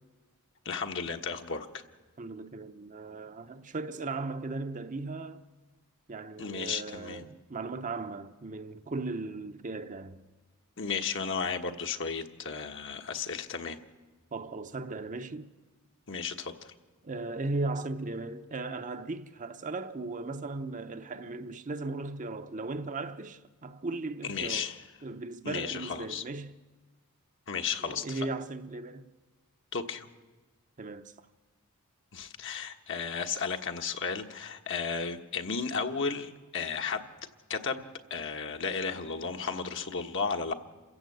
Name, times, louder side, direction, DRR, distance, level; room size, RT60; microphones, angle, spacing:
voice 1, 0.6-1.8 6.4-7.2 10.8-13.8 16.1-16.7 24.3-24.8 25.4-26.2 27.5-28.2 29.7-30.1 32.1-37.1 37.5-37.8 38.1-40.5, left 5 dB, 60° left, 1.3 m, -34 dB
voice 2, 2.2-5.4 6.1-10.2 14.3-15.5 17.0-24.7 25.0-26.5 27.8-29.1 30.8-31.1, right 3 dB, 35° right, 0.8 m, -37 dB
27.5 x 16.0 x 7.9 m
head